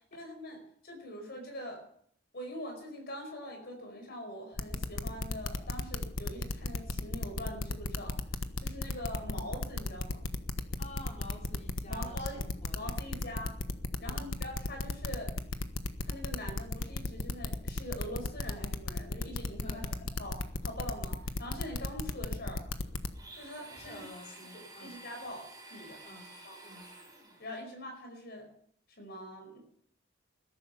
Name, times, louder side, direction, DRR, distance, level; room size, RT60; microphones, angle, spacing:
voice 1, 0.1-1.8 2.3-8.2 8.6-10.2 11.9-12.4 12.7-13.6 14.0-15.3 16.0-19.8 20.2-22.6 23.3-24.0 24.8-26.0 26.4-26.6 27.4-28.5 29.0-29.6, equal, 55° left, 3 dB, 5.0 m, -43 dB
sound 1, 4.6-23.1, left 2 dB, 80° left, 1.3 m, -34 dB
voice 2, 10.8-13.3 14.0-14.3 19.6-20.0 23.8-24.9 26.0-26.3 26.6-26.9, left 1 dB, 35° left, -2 dB, 5.1 m, -49 dB
Domestic sounds home sounds, 23.1-27.6, right 2 dB, 20° right, 6.1 m, -51 dB
21.0 x 11.5 x 5.5 m, 0.63 s
head